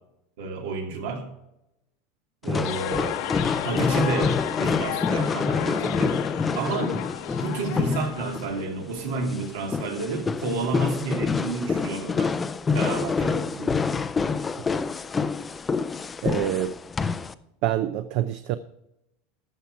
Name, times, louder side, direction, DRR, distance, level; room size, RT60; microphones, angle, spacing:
voice 1, 0.4-1.3 2.4-3.2 3.6-6.2 6.5-7.0 7.4-12.3 12.7-13.8, right 3 dB, 75° right, 2 dB, 2.9 m, -30 dB
sound 1, 2.4-17.3, left 5 dB, 15° left, 0.4 m, -27 dB
sound 2, 2.6-8.6, left 12 dB, 55° left, 0.9 m, -33 dB
voice 2, 16.2-16.8 17.6-18.6, right 12 dB, 50° right, 12 dB, 0.5 m, -26 dB
13.0 x 7.4 x 4.7 m, 0.86 s
supercardioid pair, 160°, 0 cm